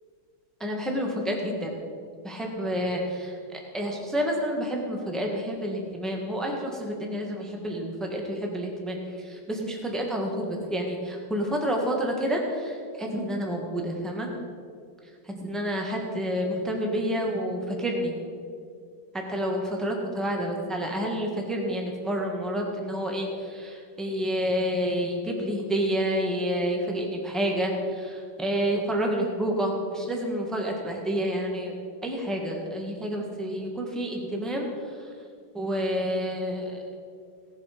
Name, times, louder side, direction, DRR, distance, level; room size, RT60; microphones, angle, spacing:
voice 1, 0.6-1.7 2.2-3.3 3.7-14.3 15.3-18.1 19.1-31.7 32.0-34.7 35.5-36.8, equal, ahead, 0 dB, 1.3 m, -29 dB
17.5 x 7.5 x 5.1 m, 2.2 s
omnidirectional pair, 2.4 m